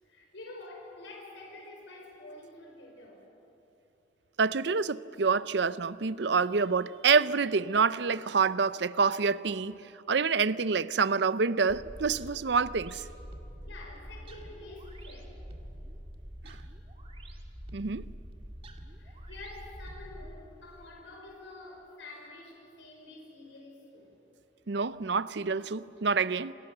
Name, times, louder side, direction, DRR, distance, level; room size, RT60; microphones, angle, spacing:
voice 1, 0.0-3.2 13.7-15.3 19.0-24.1, left 2 dB, 75° left, 5.2 m, -48 dB
voice 2, 4.4-9.8 10.1-13.0 16.4-16.6 17.7-18.1 24.7-26.5, right 5 dB, 65° right, 0.6 m, -27 dB
sound 1, 11.7-20.4, equal, 30° right, 2.1 m, -45 dB
28.5 x 28.0 x 6.8 m
head